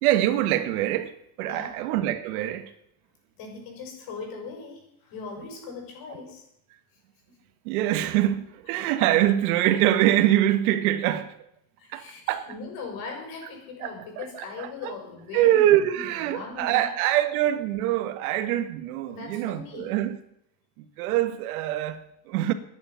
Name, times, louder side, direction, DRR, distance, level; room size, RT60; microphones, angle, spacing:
voice 1, 0.0-2.7 7.6-11.3 11.9-12.5 13.8-14.9 15.3-20.2 20.8-22.5, right 13 dB, 75° right, 1.6 m, -24 dB
voice 2, 3.3-6.4 7.3-7.4 11.8-16.9 19.1-19.9, left 4 dB, 50° left, 6.6 m, -39 dB
19.5 x 9.9 x 5.8 m
supercardioid pair, 145°, 44 cm